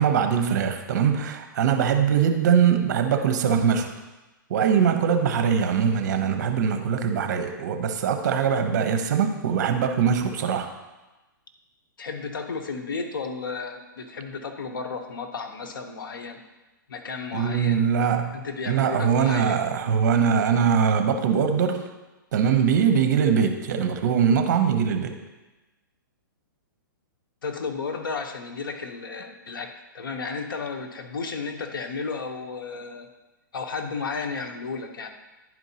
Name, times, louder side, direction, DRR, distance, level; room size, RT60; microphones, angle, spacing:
voice 1, 0.0-4.0 4.5-10.7 17.3-18.4 18.7-21.9 22.3-25.2, right 7 dB, 55° right, 6 dB, 0.8 m, -22 dB
voice 2, 12.0-16.4 16.9-17.8 18.3-19.6 27.4-33.1 33.5-35.1, left 4 dB, 85° left, 5 dB, 0.9 m, -33 dB
11.0 x 4.5 x 2.8 m, 1.1 s
hypercardioid pair, 145°, 11 cm